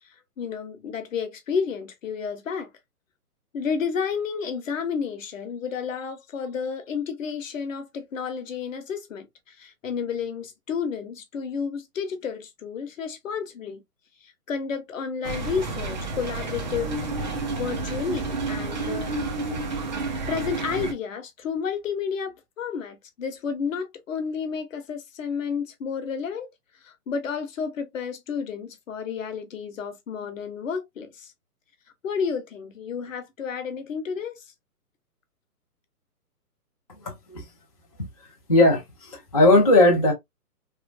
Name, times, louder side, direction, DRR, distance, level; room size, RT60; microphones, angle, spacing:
voice 1, 0.4-2.7 3.5-13.8 14.2-17.0 17.6-19.1 20.3-26.5 26.8-31.3 32.0-34.5, left 6 dB, 55° left, 0.9 m, -31 dB
sound 1, 15.2-20.9, right 3 dB, 30° right, 0.5 m, -30 dB
voice 2, 37.0-37.4 38.5-40.1, left 2 dB, 25° left, 0.4 m, -18 dB
3.1 x 2.3 x 2.2 m
hypercardioid pair, 145°, 46 cm